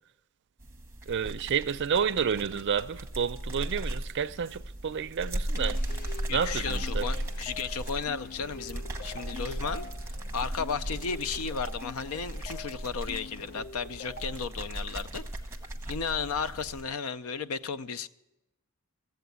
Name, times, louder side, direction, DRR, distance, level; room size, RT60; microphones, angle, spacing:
sound 1, 0.6-16.8, right 1 dB, 10° right, 0.9 m, -37 dB
voice 1, 1.1-5.8 6.3-7.1, right 7 dB, 50° right, 0.4 m, -30 dB
sound 2, 5.5-14.3, left 2 dB, 40° left, 1.0 m, -45 dB
voice 2, 6.3-15.2 15.9-18.1, left 5 dB, 70° left, 0.5 m, -34 dB
15.0 x 8.1 x 8.1 m
head